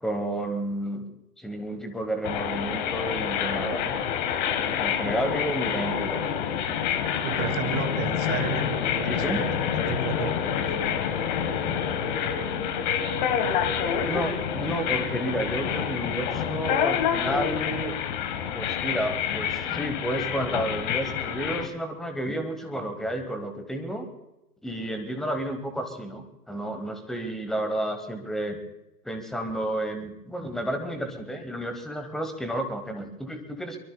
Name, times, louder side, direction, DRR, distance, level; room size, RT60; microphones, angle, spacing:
voice 1, 0.0-1.1 1.4-4.0 4.8-6.2 9.0-9.5 14.0-18.0 18.5-24.1 24.6-28.6 29.0-33.8, right 1 dB, ahead, 7 dB, 1.0 m, -31 dB
sound 1, 2.2-21.7, left 8 dB, 30° left, 1.4 m, -27 dB
voice 2, 7.2-9.4 9.9-10.3, right 10 dB, 25° right, 9 dB, 1.6 m, -32 dB
23.5 x 23.5 x 2.2 m, 0.93 s
figure-of-eight pair, 125°, 48 cm